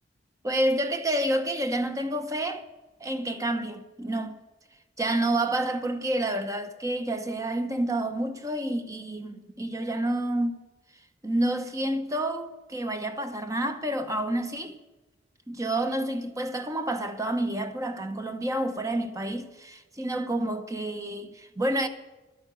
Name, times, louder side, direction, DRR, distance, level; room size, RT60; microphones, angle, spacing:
voice 1, 0.4-2.7 3.0-4.3 5.0-10.6 11.2-14.8 15.5-21.9, right 1 dB, 15° right, 1.0 m, -29 dB
12.5 x 8.8 x 9.4 m
head